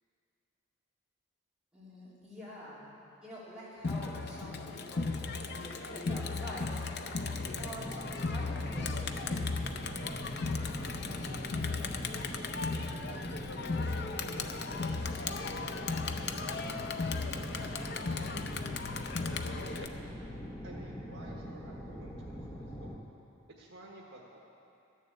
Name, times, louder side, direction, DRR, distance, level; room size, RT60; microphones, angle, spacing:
voice 1, 1.7-2.9 3.2-7.0 7.4-9.7, equal, 5° right, -10 dB, 3.4 m, -47 dB
Crowd, 3.8-19.9, left 4 dB, 50° left, 0.6 m, -36 dB
sound 1, 7.3-23.0, equal, 15° left, 1.0 m, -42 dB
voice 2, 14.2-18.8 19.2-20.0 20.6-23.0 23.5-24.4, right 1 dB, 70° right, -3 dB, 1.3 m, -53 dB
13.0 x 7.1 x 8.6 m, 2.7 s
head